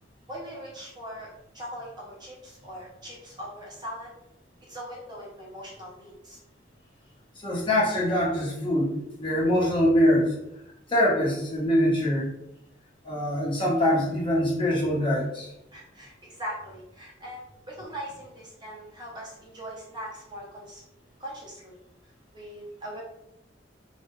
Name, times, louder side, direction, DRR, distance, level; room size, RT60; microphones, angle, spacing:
voice 1, 0.3-4.1 4.7-6.4 15.7-20.8 21.2-21.8 22.3-23.0, equal, 20° right, -4 dB, 0.7 m, -40 dB
voice 2, 7.4-10.3 10.9-12.3 13.0-15.5, equal, 25° left, -5 dB, 1.1 m, -23 dB
3.9 x 2.3 x 3.1 m, 0.83 s
head